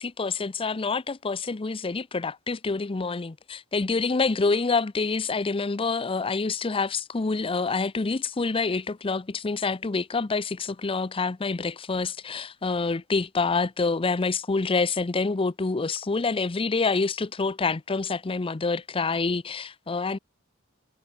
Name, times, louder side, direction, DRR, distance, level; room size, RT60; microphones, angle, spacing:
voice 1, 0.0-20.2, left 4 dB, 25° left, 0.6 m, -27 dB
head